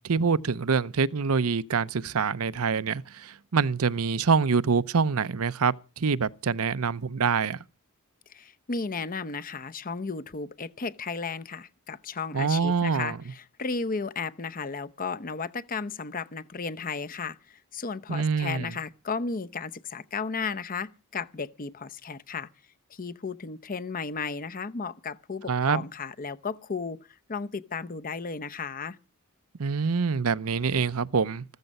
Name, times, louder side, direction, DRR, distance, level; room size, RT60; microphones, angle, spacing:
voice 1, 0.0-7.6 12.3-13.2 18.1-18.7 25.5-25.8 29.6-31.4, right 5 dB, 75° right, 0.7 m, -25 dB
voice 2, 8.3-22.5 22.9-27.0 27.3-29.0, left 4 dB, 40° left, 0.7 m, -34 dB
14.5 x 13.5 x 5.4 m
head